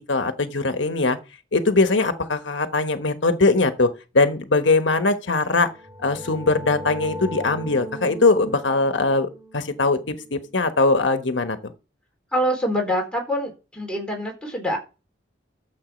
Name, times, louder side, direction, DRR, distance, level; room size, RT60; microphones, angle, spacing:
voice 1, 0.1-1.2 1.5-5.7 6.0-11.7, left 3 dB, 90° left, 1.2 m, -21 dB
sound 1, 5.6-11.1, equal, 20° right, 2.3 m, -38 dB
voice 2, 12.3-14.8, equal, 5° left, 4.2 m, -25 dB
12.5 x 7.5 x 5.2 m
head